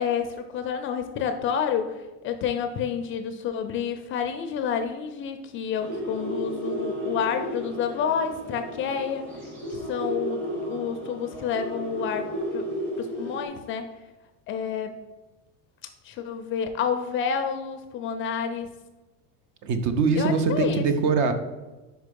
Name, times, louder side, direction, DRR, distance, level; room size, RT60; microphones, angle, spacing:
voice 1, 0.0-9.2 9.7-12.3 12.5-12.6 13.0-13.9 14.5-14.9 16.0-18.7 20.2-20.8, left 7 dB, 35° left, 7 dB, 0.4 m, -29 dB
sound 1, 5.8-13.4, equal, 30° right, 1.6 m, -33 dB
voice 2, 19.6-21.3, right 5 dB, 50° right, 9 dB, 0.8 m, -23 dB
5.1 x 4.6 x 5.2 m, 1.1 s
cardioid pair, 150°, 38 cm